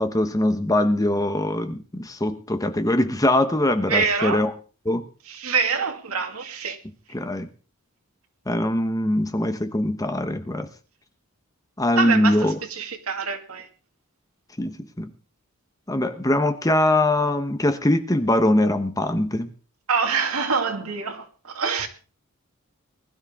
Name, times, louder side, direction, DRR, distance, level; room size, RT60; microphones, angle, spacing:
voice 1, 0.0-4.5 4.8-5.0 7.1-7.5 8.5-10.7 11.8-12.5 14.6-15.1 15.9-19.5, left 1 dB, 15° left, 1.0 m, -22 dB
voice 2, 3.9-4.5 5.3-6.8 12.0-13.7 19.9-21.9, right 5 dB, 85° right, 2.1 m, -25 dB
20.5 x 12.0 x 3.6 m
head